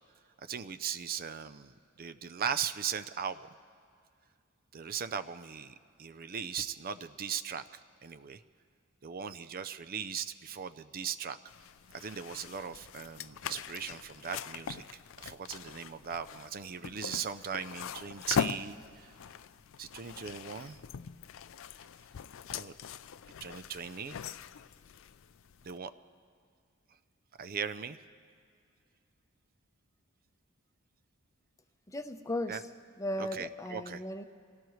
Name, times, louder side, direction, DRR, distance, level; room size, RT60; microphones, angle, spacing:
voice 1, 0.5-3.5 4.7-7.6 8.0-8.4 9.0-11.4 11.9-14.8 15.2-19.1 19.8-20.8 22.5-22.7 23.4-24.2 25.6-25.9 27.4-28.0 32.5-32.6 33.2-34.0, right 7 dB, 45° right, 12 dB, 0.5 m, -38 dB
sound 1, 11.5-25.8, left 7 dB, 65° left, 0.4 m, -41 dB
voice 2, 31.9-32.6 33.0-34.2, left 1 dB, 15° left, 8 dB, 0.7 m, -36 dB
26.0 x 17.5 x 3.1 m, 2.3 s
head